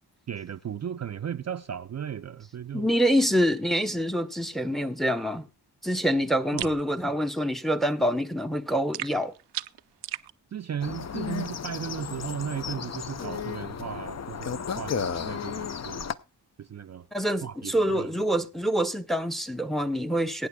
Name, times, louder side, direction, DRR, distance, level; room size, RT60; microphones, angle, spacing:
voice 1, 0.3-2.9 6.5-6.7 10.5-16.1 16.6-17.1 17.4-18.2, right 8 dB, 40° right, 0.5 m, -36 dB
voice 2, 2.7-5.5 5.8-9.3 17.1-20.5, equal, ahead, 0.7 m, -26 dB
sound 1, 6.6-6.8 8.9-10.3, right 13 dB, 85° right, 0.5 m, -35 dB
sound 2, 10.8-16.1, left 7 dB, 40° left, 0.6 m, -33 dB
22.5 x 9.0 x 2.3 m
wide cardioid pair, 95°, 41 cm